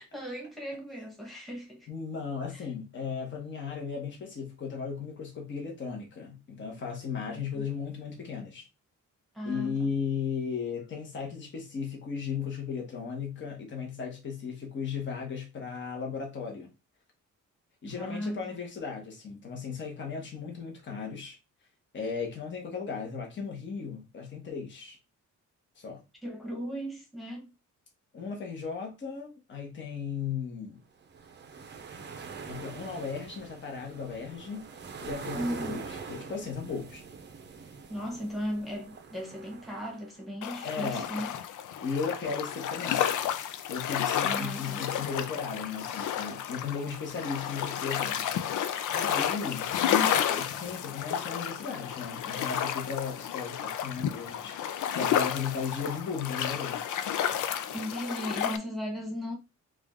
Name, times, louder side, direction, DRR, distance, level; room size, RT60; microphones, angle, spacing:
voice 1, 0.0-1.9 2.5-2.7 7.3-7.6 9.3-9.9 17.8-18.6 26.2-27.5 35.3-35.9 37.9-41.3 44.2-44.9 57.7-59.4, equal, ahead, 1.2 m, -37 dB
voice 2, 1.9-8.7 9.4-16.7 17.8-21.4 21.9-25.0 25.8-26.0 28.1-30.8 32.2-34.7 35.0-37.0 40.6-41.2 41.8-43.2 43.7-48.3 48.9-56.8, left 6 dB, 40° left, 1.2 m, -36 dB
sound 1, 31.0-40.3, right 5 dB, 35° right, 0.7 m, -44 dB
sound 2, 40.4-58.6, left 9 dB, 75° left, 0.5 m, -31 dB
4.9 x 2.4 x 3.6 m
wide cardioid pair, 175°, 31 cm